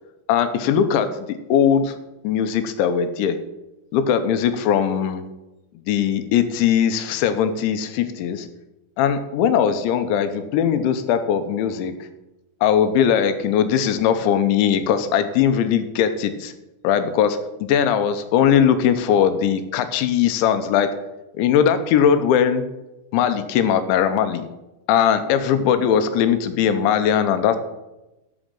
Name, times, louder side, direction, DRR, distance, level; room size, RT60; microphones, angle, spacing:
voice 1, 0.3-2.0 2.2-3.4 3.9-5.3 5.9-8.5 9.0-11.9 12.6-16.5 16.8-20.9 21.3-22.6 23.1-24.4 24.9-27.6, left 8 dB, 85° left, 10 dB, 3.2 m, -20 dB
11.5 x 6.4 x 7.6 m, 1.0 s
omnidirectional pair, 5.3 m